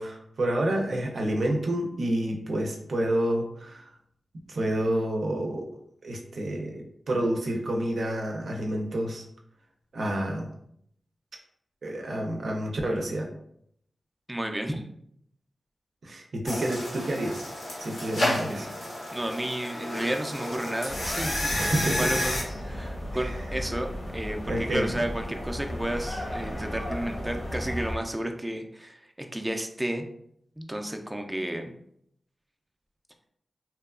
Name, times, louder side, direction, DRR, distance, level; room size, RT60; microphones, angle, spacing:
voice 1, 0.0-3.8 4.5-5.7 6.0-9.2 9.9-10.5 11.8-13.3 16.0-17.4 17.8-18.7 21.5-22.2 23.1-23.2 24.5-24.9, right 1 dB, 75° right, 1 dB, 0.5 m, -29 dB
voice 2, 14.3-14.9 18.2-18.7 19.1-30.1 30.6-31.7, right 1 dB, 15° right, 4 dB, 0.4 m, -32 dB
sound 1, 16.5-22.4, left 1 dB, 90° left, 1.0 m, -31 dB
sound 2, 20.9-28.0, equal, 60° left, 0.8 m, -35 dB
2.8 x 2.2 x 2.4 m, 0.69 s
cardioid pair, 55°, 0 cm